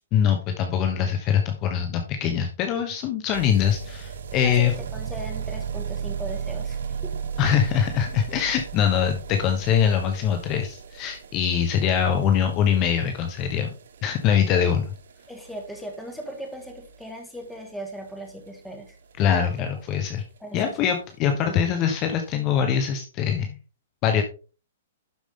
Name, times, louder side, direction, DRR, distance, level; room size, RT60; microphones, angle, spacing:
voice 1, 0.1-4.7 7.4-13.7 14.0-14.9 19.2-20.2 20.5-23.5 24.0-24.2, left 8 dB, 30° left, 6 dB, 1.1 m, -23 dB
sound 1, 3.3-20.1 20.4-20.5 20.7-20.8 21.0-21.1 21.3-21.4 22.1-22.2, right 7 dB, 75° right, 1.4 m, -37 dB
voice 2, 4.4-7.1 15.3-19.0 20.4-20.9 21.4-21.9, right 1 dB, 5° left, 3 dB, 2.0 m, -38 dB
12.0 x 5.1 x 3.8 m, 0.35 s
hypercardioid pair, 155°, 0 cm